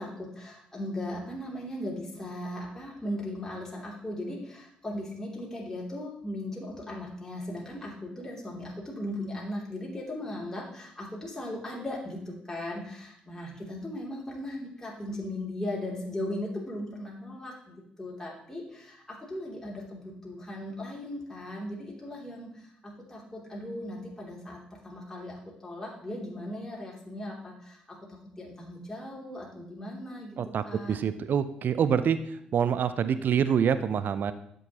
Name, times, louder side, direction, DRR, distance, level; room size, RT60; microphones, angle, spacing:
voice 1, 0.0-30.4 30.7-31.0, left 1 dB, 10° left, -4 dB, 2.8 m, -38 dB
voice 2, 30.4-32.2 32.5-34.3, right 7 dB, 50° right, 13 dB, 0.5 m, -26 dB
12.5 x 6.3 x 2.9 m, 0.71 s
figure-of-eight pair, 45°, 4 cm